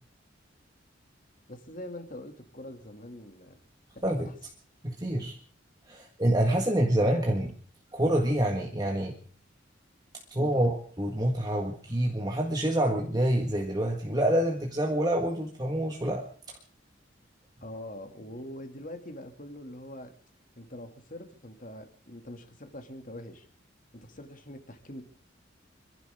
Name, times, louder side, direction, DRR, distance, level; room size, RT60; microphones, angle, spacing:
voice 1, 1.5-3.6 4.0-4.1 10.4-10.7 17.6-20.1 20.6-23.5 23.9-25.0, left 1 dB, 45° left, 5 dB, 2.6 m, -43 dB
voice 2, 4.8-5.4 5.9-7.5 7.9-9.1 10.3-16.2, right 1 dB, 20° right, 1 dB, 1.7 m, -27 dB
30.0 x 11.5 x 3.7 m, 0.43 s
head